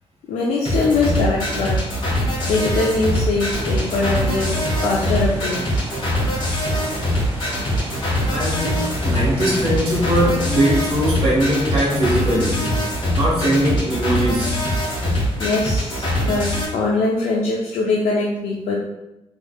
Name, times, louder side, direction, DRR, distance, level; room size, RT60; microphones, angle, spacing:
voice 1, 0.3-1.8 2.4-5.8 15.4-18.8, left 3 dB, 85° left, -4 dB, 0.5 m, -22 dB
sound 1, 0.6-16.6, equal, 50° left, 1.4 m, -23 dB
sound 2, 3.5-12.2, right 1 dB, 20° right, 0.8 m, -35 dB
voice 2, 8.3-12.7 13.2-14.6, equal, 65° right, -6 dB, 1.4 m, -20 dB
3.3 x 3.2 x 2.2 m, 0.93 s
cardioid pair, 95°, 11 cm